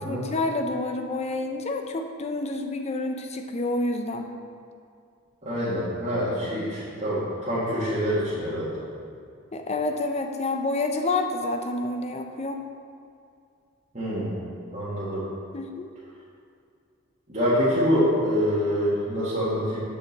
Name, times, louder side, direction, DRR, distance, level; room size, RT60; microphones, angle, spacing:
voice 1, 0.0-4.3 9.5-12.6 15.5-15.9, left 2 dB, 30° left, 5 dB, 0.5 m, -28 dB
voice 2, 5.4-8.7 13.9-14.4 14.7-15.2 17.3-19.8, equal, 35° right, -11 dB, 1.7 m, -25 dB
6.6 x 5.3 x 7.1 m, 2.4 s
head